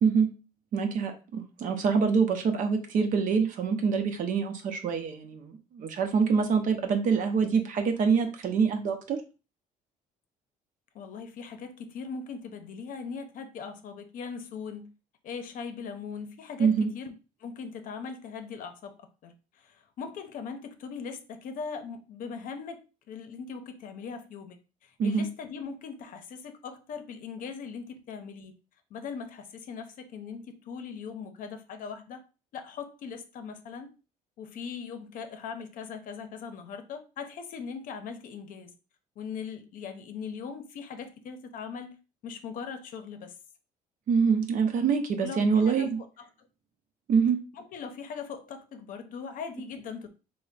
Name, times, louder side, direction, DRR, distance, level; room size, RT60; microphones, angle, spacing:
voice 1, 0.7-9.2 16.6-16.9 25.0-25.3 44.1-46.0 47.1-47.4, right 5 dB, 60° right, 0.7 m, -25 dB
voice 2, 10.9-14.9 15.2-17.1 17.4-18.9 19.2-28.5 28.9-32.2 32.5-33.9 34.4-38.7 39.2-42.0 42.2-43.4 45.2-45.9 46.2-46.5 47.5-50.1, left 6 dB, 65° left, 0.6 m, -40 dB
3.3 x 2.1 x 3.9 m
cardioid pair, 120°, 15 cm